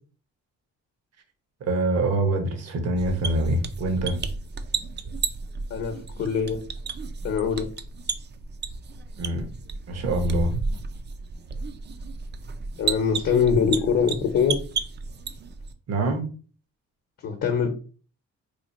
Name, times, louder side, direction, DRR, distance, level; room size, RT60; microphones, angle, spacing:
voice 1, 1.6-4.2 9.2-9.5 9.9-10.5 15.9-16.2, right 2 dB, 55° right, 6 dB, 1.0 m, -25 dB
sound 1, 3.0-15.7, right 4 dB, 35° right, 0.5 m, -33 dB
voice 2, 5.7-6.6 7.2-7.7 12.8-14.6 17.2-17.7, left 6 dB, 55° left, 4 dB, 0.8 m, -23 dB
3.2 x 2.4 x 4.1 m, 0.39 s
cardioid pair, 90°, 30 cm